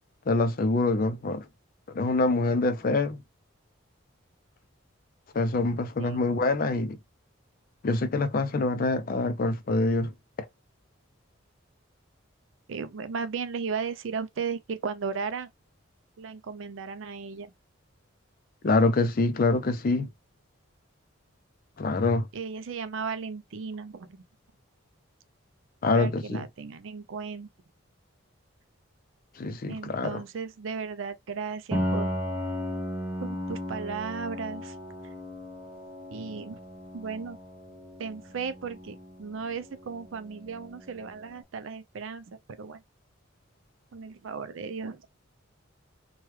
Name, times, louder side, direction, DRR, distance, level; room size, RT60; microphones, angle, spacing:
voice 1, 0.3-1.5 1.9-3.2 5.3-7.0 7.8-10.1 18.6-20.1 21.8-22.3 25.8-26.4 29.4-30.2, left 3 dB, 45° left, 0.4 m, -25 dB
voice 2, 12.7-15.5 16.2-17.5 22.3-24.2 25.9-27.5 29.7-32.1 33.2-34.8 36.1-36.6 36.9-37.4 38.0-42.8 43.9-45.1, right 5 dB, 70° right, 0.4 m, -35 dB
Piano, 31.7-41.3, equal, 10° right, 0.6 m, -36 dB
3.1 x 2.2 x 3.0 m
head